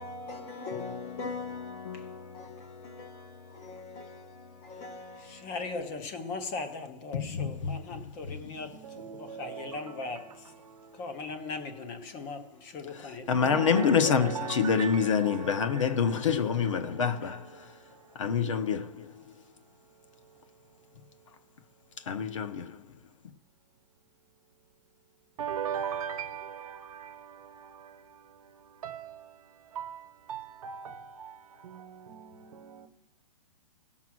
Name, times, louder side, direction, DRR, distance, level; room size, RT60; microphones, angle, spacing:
voice 1, 0.0-8.7 9.2-10.2 11.0-13.8 17.2-17.3, left 3 dB, 10° left, 0.5 m, -40 dB
voice 2, 0.7-2.3 7.1-7.7 13.3-17.4 18.2-19.0 22.1-22.7, left 6 dB, 50° left, 0.9 m, -27 dB
voice 3, 8.7-10.1 13.3-17.1 25.4-27.5 28.8-29.2 29.7-31.4 31.6-32.9, right 8 dB, 60° right, 1.0 m, -39 dB
17.0 x 5.8 x 6.1 m
hypercardioid pair, 180°, 21 cm